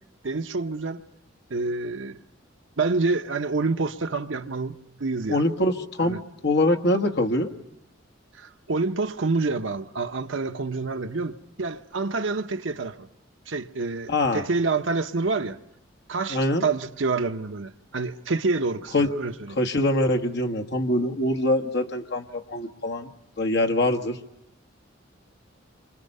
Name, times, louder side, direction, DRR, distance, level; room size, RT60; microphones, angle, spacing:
voice 1, 0.2-1.0 1.5-2.2 2.8-5.4 6.0-6.2 8.4-13.1 13.5-15.6 16.1-19.6, right 3 dB, 70° right, 0.9 m, -27 dB
voice 2, 5.3-7.5 14.1-14.4 16.3-16.6 18.9-19.1 19.6-23.1 23.4-24.2, left 1 dB, 60° left, 1.4 m, -24 dB
29.0 x 25.0 x 5.5 m
head